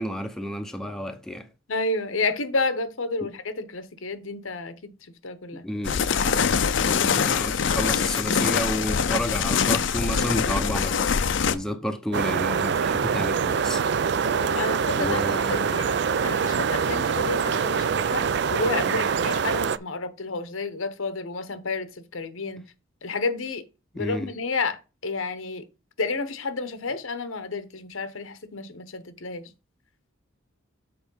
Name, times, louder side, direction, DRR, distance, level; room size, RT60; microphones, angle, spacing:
voice 1, 0.0-1.5 3.2-3.3 5.6-6.1 6.8-11.1 11.5-13.8 15.0-15.8 23.9-24.3, equal, 5° left, 0.6 m, -31 dB
voice 2, 1.7-4.9 5.2-5.6 14.2-16.0 16.2-22.6 23.0-23.6 23.9-25.6 26.0-29.5, left 3 dB, 80° left, 1.0 m, -30 dB
sound 1, 5.8-11.5, left 6 dB, 65° left, 0.5 m, -23 dB
sound 2, 12.1-19.8, right 6 dB, 55° right, 0.4 m, -24 dB
7.0 x 4.5 x 5.5 m
head